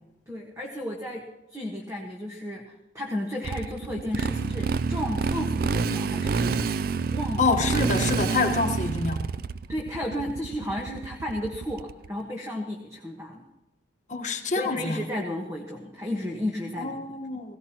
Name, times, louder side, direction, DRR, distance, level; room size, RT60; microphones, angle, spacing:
voice 1, 0.3-6.7 7.1-7.5 9.7-13.4 14.6-17.1, left 1 dB, 15° right, 0 dB, 1.3 m, -33 dB
Motorcycle, 3.4-12.1, right 4 dB, 50° right, 0.4 m, -28 dB
voice 2, 7.4-9.2 14.1-15.0 16.8-17.6, left 3 dB, 40° left, 4 dB, 1.3 m, -26 dB
17.5 x 17.0 x 2.9 m, 0.98 s
head